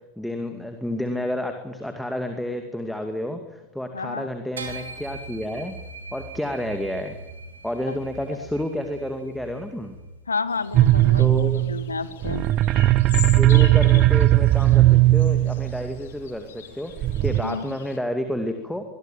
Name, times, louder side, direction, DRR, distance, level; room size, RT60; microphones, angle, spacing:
voice 1, 0.2-5.7 6.1-7.2 7.6-10.0 11.2-11.6 13.4-18.8, left 1 dB, ahead, 6 dB, 2.4 m, -30 dB
voice 2, 3.9-4.3 7.9-8.0 10.3-12.5 17.4-17.8, left 4 dB, 75° left, 15 dB, 1.6 m, -30 dB
Scary sound, 4.6-10.2, right 3 dB, 70° right, 4.6 m, -40 dB
sound 1, 10.5-18.0, left 9 dB, 60° left, 3.4 m, -41 dB
sound 2, 10.7-16.0 17.0-17.4, right 16 dB, 35° right, 0.8 m, -18 dB
24.0 x 22.5 x 9.2 m, 1.0 s
figure-of-eight pair, 90°, 0 cm